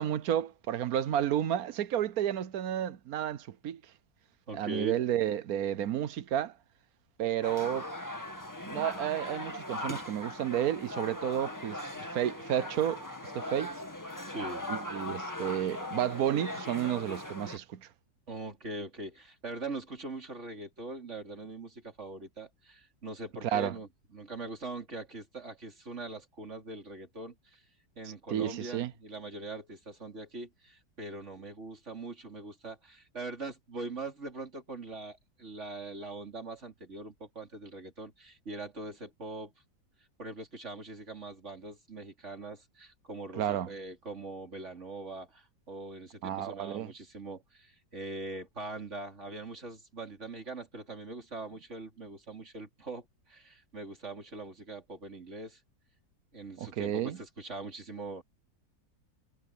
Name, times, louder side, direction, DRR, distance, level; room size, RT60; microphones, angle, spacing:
voice 1, 0.0-3.8 4.5-6.5 7.2-7.9 8.7-13.0 13.3-13.7 14.7-17.9 23.5-23.7 28.3-28.9 43.4-43.7 46.2-46.9 56.6-57.2, right 10 dB, 60° right, 1.1 m, -31 dB
voice 2, 4.5-5.0 14.2-14.7 18.3-27.6 28.0-39.5 40.2-55.6 56.3-58.2, right 2 dB, 40° right, 3.7 m, -42 dB
sound 1, 7.4-17.6, left 1 dB, 10° left, 2.0 m, -39 dB
omnidirectional pair, 1.9 m